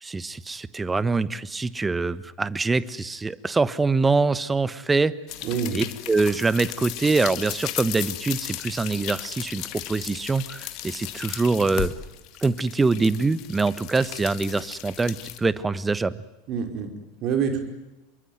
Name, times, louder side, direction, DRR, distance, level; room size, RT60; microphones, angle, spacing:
voice 1, 0.0-5.1 5.7-11.9 12.4-16.2, right 3 dB, 15° right, 17 dB, 1.2 m, -24 dB
sound 1, 5.3-15.4, left 14 dB, 50° left, 2.0 m, -35 dB
voice 2, 5.4-5.8 16.5-17.6, right 7 dB, 45° right, 7 dB, 5.1 m, -27 dB
27.0 x 22.5 x 9.4 m, 1.0 s
figure-of-eight pair, 80°, 0 cm